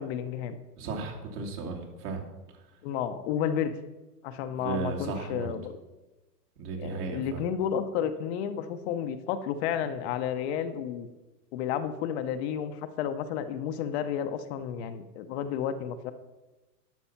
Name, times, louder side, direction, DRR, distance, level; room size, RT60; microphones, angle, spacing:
voice 1, 0.0-0.6 2.8-3.7 4.2-5.7 6.8-11.1 11.5-16.1, left 8 dB, 40° left, 9 dB, 0.8 m, -31 dB
voice 2, 0.8-2.2 2.5-2.7 4.5-5.5 6.6-7.5, right 4 dB, 60° right, 0 dB, 2.7 m, -35 dB
12.0 x 6.2 x 5.7 m, 1.1 s
hypercardioid pair, 125°, 49 cm